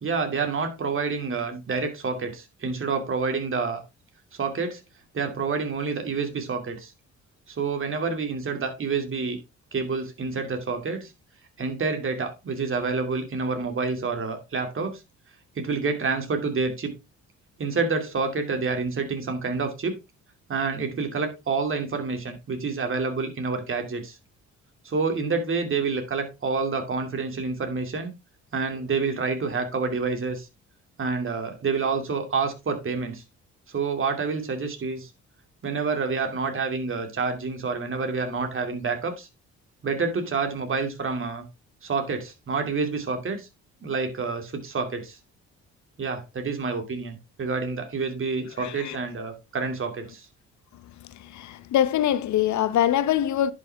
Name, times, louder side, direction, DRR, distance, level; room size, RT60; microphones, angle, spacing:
voice 1, 0.0-3.8 4.3-4.8 5.1-6.9 7.5-9.4 9.7-11.1 11.6-15.0 15.5-16.9 17.6-20.0 20.5-24.2 24.8-28.1 28.5-30.5 31.0-33.2 33.7-35.1 35.6-39.3 39.8-41.4 41.8-43.5 43.8-45.2 46.0-50.3, right 4 dB, 45° right, 2.6 m, -28 dB
voice 2, 48.6-49.0 51.2-53.5, left 11 dB, 70° left, 0.9 m, -23 dB
10.5 x 5.9 x 3.5 m
cardioid pair, 90°, 30 cm